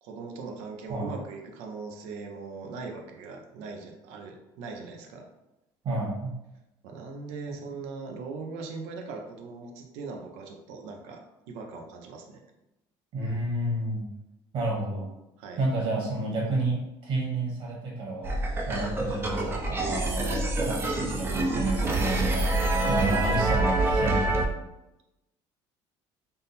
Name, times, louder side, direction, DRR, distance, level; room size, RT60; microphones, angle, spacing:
voice 1, 0.0-5.3 6.8-11.2 11.5-12.4 15.4-15.6 20.2-20.4 22.9-23.2, right 4 dB, 85° right, 2 dB, 0.6 m, -40 dB
voice 2, 5.8-6.3 13.1-14.1 14.5-15.1 15.6-18.4 18.7-24.3, right 2 dB, 55° right, -3 dB, 1.5 m, -30 dB
sound 1, 18.2-24.5, right 2 dB, 20° right, 0.5 m, -26 dB
3.7 x 2.0 x 4.0 m, 0.94 s
cardioid pair, 125°, 11 cm